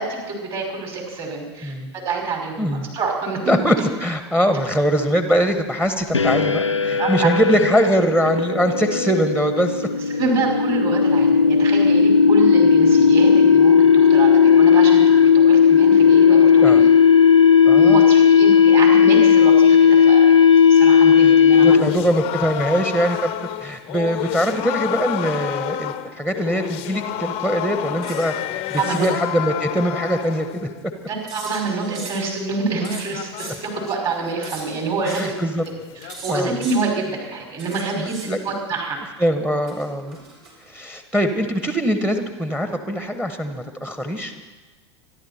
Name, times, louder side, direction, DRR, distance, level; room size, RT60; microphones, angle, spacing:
voice 1, 0.0-1.7 2.0-2.5 2.9-3.6 7.0-7.3 10.1-16.9 17.7-21.8 28.8-29.1 31.1-35.3 36.0-39.0, right 4 dB, 35° right, 1 dB, 5.4 m, -26 dB
voice 2, 1.6-1.9 2.6-2.9 3.5-9.8 16.6-16.8 17.6-18.0 21.6-23.3 23.6-30.7 35.0-35.6 36.3-36.5 37.9-38.4 39.2-40.2 40.7-44.5, equal, 5° right, 7 dB, 1.4 m, -22 dB
sound 1, 6.1-22.1, left 7 dB, 85° left, 0.6 m, -14 dB
sound 2, 21.5-30.8 32.6-36.4, left 13 dB, 40° left, 0.8 m, -30 dB
sound 3, 28.0-28.3 28.6-29.1 31.3-32.3 32.8-33.6 34.4-34.7 35.0-35.3 36.1-36.8 37.6-38.3 39.7-40.7, right 3 dB, 60° right, 5.6 m, -38 dB
26.5 x 11.5 x 4.4 m, 1.2 s
figure-of-eight pair, 85°, 15 cm